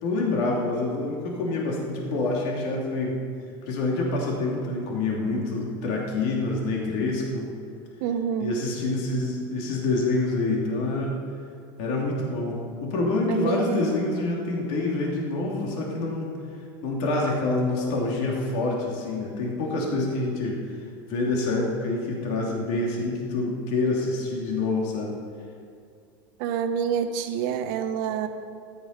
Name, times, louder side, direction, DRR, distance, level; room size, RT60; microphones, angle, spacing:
voice 1, 0.0-3.2 3.7-7.5 8.4-11.2 11.8-16.3 16.8-20.6 21.1-25.2, left 2 dB, 65° left, -2 dB, 2.7 m, -27 dB
voice 2, 8.0-8.5 13.3-13.9 26.4-28.3, right 8 dB, 70° right, 7 dB, 1.2 m, -27 dB
14.0 x 11.0 x 5.3 m, 2.3 s
supercardioid pair, 110°, 12 cm